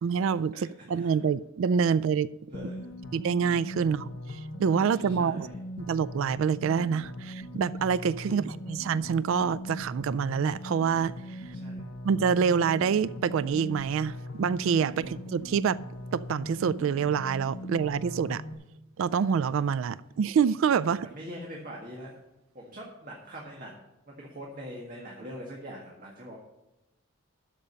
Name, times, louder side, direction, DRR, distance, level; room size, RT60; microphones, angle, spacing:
voice 1, 0.0-2.3 3.1-5.5 5.8-11.4 12.0-15.8 16.1-18.4 19.0-21.1, right 6 dB, 70° right, 0.3 m, -27 dB
voice 2, 0.5-1.1 2.5-2.9 4.9-5.6 8.2-8.4 11.5-11.9 14.8-15.1 18.2-18.4 20.8-22.1 22.5-23.8 24.1-26.4, equal, 40° right, 1.7 m, -43 dB
sound 1, 2.5-18.5, equal, 60° left, 1.1 m, -40 dB
13.0 x 5.2 x 6.8 m
head